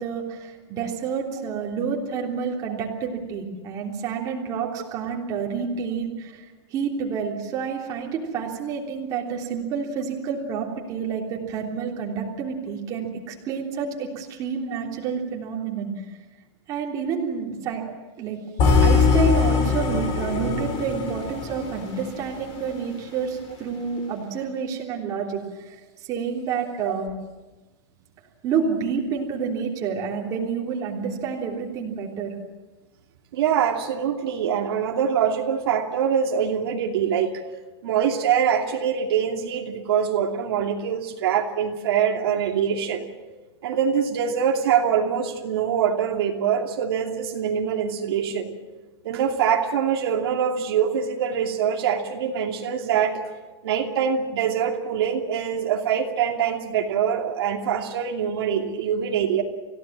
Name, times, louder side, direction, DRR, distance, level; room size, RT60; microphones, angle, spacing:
voice 1, 0.0-6.4 6.7-15.9 16.7-17.8 18.2-18.4 18.8-27.1 28.4-32.4, right 6 dB, 25° right, -1 dB, 3.4 m, -29 dB
sound 1, 18.6-22.7, left 5 dB, 30° left, 5.6 m, -22 dB
voice 2, 33.3-37.4 37.8-43.1 43.6-48.5 49.0-53.2 53.6-59.4, right 8 dB, 55° right, 1 dB, 2.7 m, -24 dB
28.5 x 16.5 x 7.5 m, 1.2 s
supercardioid pair, 170°, 15 cm